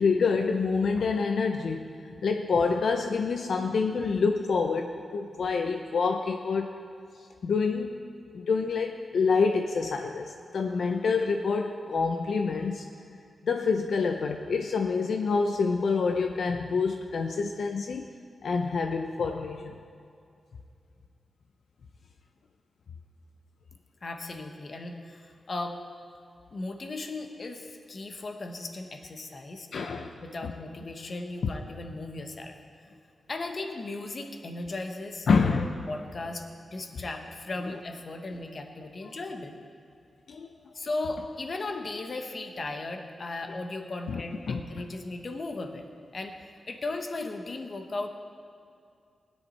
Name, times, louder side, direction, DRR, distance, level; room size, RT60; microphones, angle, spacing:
voice 1, 0.0-6.8 7.4-8.0 8.3-12.9 13.4-18.1 18.4-19.8 29.7-30.1 30.4-30.5 35.3-35.7 40.3-40.5 44.1-44.2 44.5-44.8, left 4 dB, 70° left, 4 dB, 0.6 m, -27 dB
voice 2, 24.0-25.8 26.5-32.5 33.3-36.5 36.7-39.5 40.7-45.8 46.1-48.1, left 2 dB, 40° left, 4 dB, 1.1 m, -37 dB
20.5 x 10.0 x 4.1 m, 2.4 s
wide cardioid pair, 150°, 0 cm